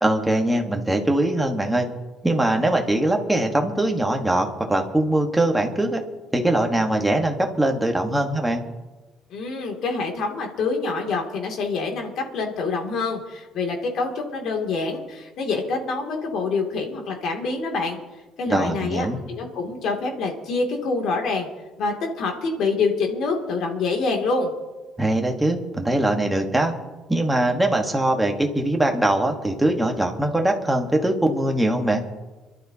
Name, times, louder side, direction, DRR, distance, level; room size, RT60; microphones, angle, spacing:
voice 1, 0.0-1.9 2.2-6.0 6.3-8.6 18.5-19.2 25.0-26.7 27.1-32.0, right 1 dB, 5° right, 2 dB, 1.3 m, -22 dB
voice 2, 9.3-18.0 18.4-21.5 21.8-24.5, left 4 dB, 50° left, 2 dB, 2.5 m, -26 dB
27.5 x 12.0 x 2.8 m, 1.2 s
cardioid pair, 170°, 0 cm